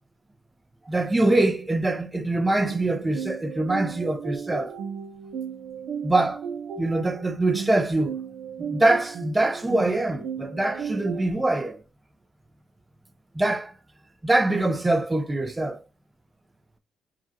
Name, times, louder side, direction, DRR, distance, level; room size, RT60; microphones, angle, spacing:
voice 1, 0.9-4.7 6.0-6.4 6.8-8.2 8.6-11.8 13.3-13.7 14.2-15.8, right 2 dB, 15° right, 0.6 m, -24 dB
sound 1, 2.6-11.3, right 7 dB, 75° right, 0.6 m, -35 dB
4.8 x 2.3 x 2.8 m
cardioid pair, 105°, 0 cm